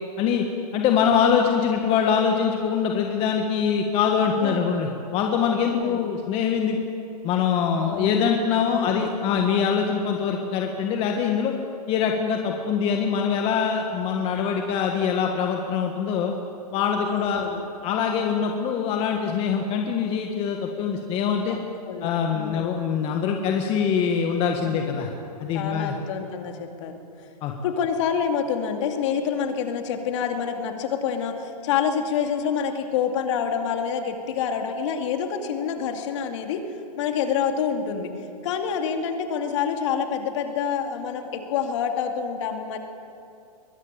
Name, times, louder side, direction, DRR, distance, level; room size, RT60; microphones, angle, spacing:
voice 1, 0.7-6.9 7.2-11.5 11.9-16.3 16.7-17.4 17.8-21.6 22.0-25.1 25.4-25.9 27.4-27.5, left 7 dB, 30° left, 3 dB, 1.5 m, -23 dB
voice 2, 4.4-4.8 5.6-6.0 7.8-8.3 8.7-9.1 17.0-17.6 21.5-21.6 21.9-22.8 24.6-24.8 25.5-27.0 27.6-36.6 37.0-38.1 38.4-42.8, left 7 dB, 50° left, 5 dB, 2.5 m, -27 dB
22.5 x 15.0 x 8.9 m, 2.7 s
hypercardioid pair, 140°, 20 cm